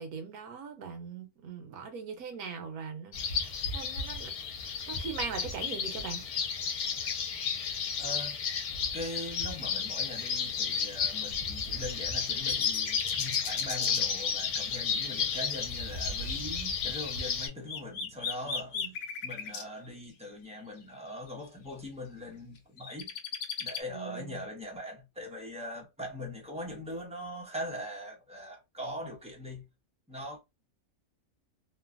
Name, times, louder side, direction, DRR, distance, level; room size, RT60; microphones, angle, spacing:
voice 1, 0.0-4.3 4.9-6.3 18.7-18.9 23.9-24.4, right 5 dB, 80° right, 1.3 m, -40 dB
sound 1, 3.1-17.5, left 6 dB, 80° left, 1.2 m, -32 dB
sound 2, 7.0-7.1 11.1-11.2 11.9-14.0 17.1-19.6 20.8-20.9 21.3-21.4 22.6-23.8, left 6 dB, 65° left, 0.9 m, -36 dB
voice 2, 8.0-8.4 8.9-18.8 19.2-23.1 23.6-29.7 30.1-30.4, left 1 dB, 10° right, 0.3 m, -41 dB
3.0 x 2.2 x 2.4 m
omnidirectional pair, 1.6 m